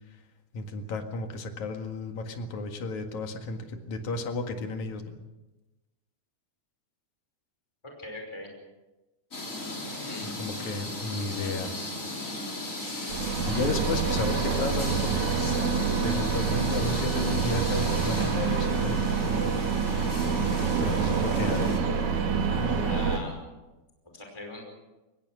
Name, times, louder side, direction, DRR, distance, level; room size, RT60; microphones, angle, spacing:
voice 1, 0.5-5.1 10.1-11.7 13.2-15.6 16.0-19.0 20.8-21.7, left 3 dB, 70° left, 5 dB, 3.2 m, -33 dB
voice 2, 8.0-8.5 9.9-10.3 22.5-23.4 24.1-24.6, left 2 dB, 10° left, 1 dB, 5.1 m, -40 dB
sound 1, 9.3-21.8, left 2 dB, 25° left, 4.1 m, -36 dB
sound 2, 13.1-23.2, right 6 dB, 70° right, 3.4 m, -27 dB
23.5 x 20.0 x 6.3 m, 1.1 s
omnidirectional pair, 3.4 m